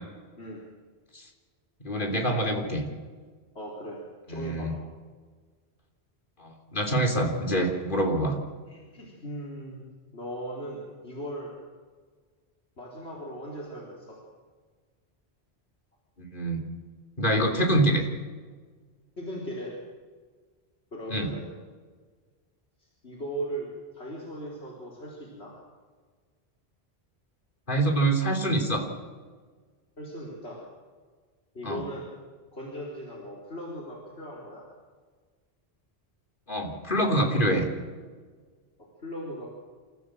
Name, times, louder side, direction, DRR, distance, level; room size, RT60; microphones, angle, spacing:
voice 1, 1.8-2.9 4.3-4.7 6.4-8.4 16.2-16.6 17.2-18.1 21.1-21.3 27.7-28.8 31.6-31.8 36.5-37.6, right 1 dB, 50° left, 2 dB, 3.5 m, -25 dB
voice 2, 3.5-4.0 4.3-4.7 8.7-9.9 10.1-11.5 12.8-14.2 19.2-19.8 20.9-21.5 22.8-23.7 23.9-25.5 30.0-30.6 31.5-32.1 32.5-34.6 39.0-39.5, equal, 80° left, -4 dB, 4.3 m, -38 dB
27.5 x 15.0 x 7.8 m, 1.5 s
omnidirectional pair, 1.1 m